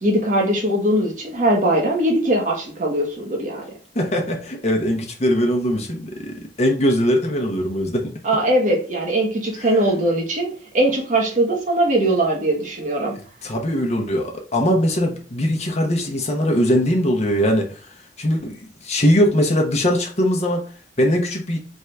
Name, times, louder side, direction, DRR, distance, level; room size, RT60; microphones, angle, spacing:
voice 1, 0.0-3.6 8.2-10.5 10.7-13.1, right 1 dB, 45° right, 1.2 m, -20 dB
voice 2, 3.9-8.4 9.6-9.7 13.4-17.8 18.2-20.7 21.0-21.6, equal, 40° left, 1.0 m, -21 dB
4.2 x 3.6 x 3.3 m
head